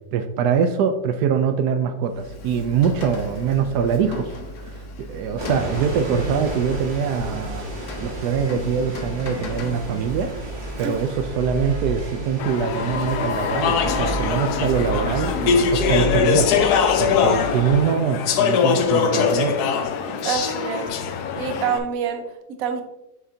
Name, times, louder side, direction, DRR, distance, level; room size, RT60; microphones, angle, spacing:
voice 1, 0.1-7.7 8.0-10.3 10.8-16.5 17.0-19.6, right 7 dB, 85° right, 9 dB, 1.2 m, -23 dB
Rain, 2.0-11.3, left 2 dB, 55° left, 1.1 m, -37 dB
sound 1, 5.4-17.8, right 2 dB, 50° right, 2.2 m, -32 dB
Speech / Chatter, 12.4-21.8, left 7 dB, 80° left, 1.2 m, -22 dB
voice 2, 20.2-20.9 21.4-22.8, right 7 dB, 65° right, 7 dB, 1.2 m, -27 dB
7.8 x 6.2 x 2.7 m, 0.90 s
omnidirectional pair, 1.7 m